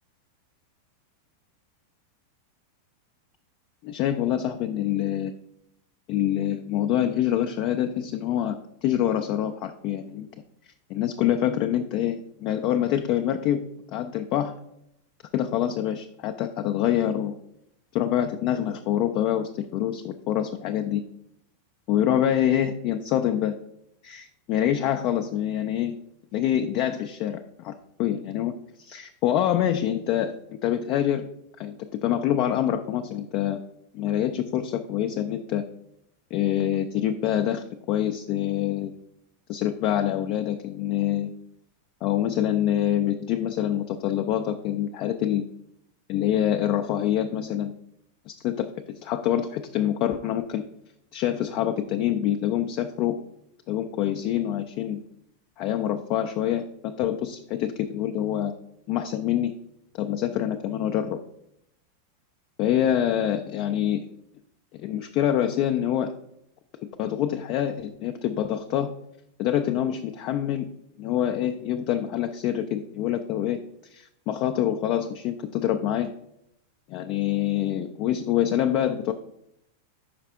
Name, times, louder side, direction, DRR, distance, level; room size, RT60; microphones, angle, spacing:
voice 1, 3.8-5.3 6.1-10.3 10.9-14.6 15.3-17.4 17.9-21.0 21.9-23.6 24.0-26.0 26.3-27.7 28.0-30.3 30.6-31.2 31.6-33.6 33.9-35.6 36.3-39.0 39.5-41.3 42.0-45.5 46.1-47.7 48.3-50.6 51.1-53.2 53.7-55.0 55.6-58.5 58.9-59.5 60.0-61.2 62.6-64.1 64.8-66.1 67.0-68.9 69.4-70.7 71.0-73.6 73.9-76.1 76.9-79.1, left 11 dB, 40° left, 7 dB, 0.3 m, -26 dB
5.8 x 4.8 x 3.4 m, 0.78 s
figure-of-eight pair, 90°, 0 cm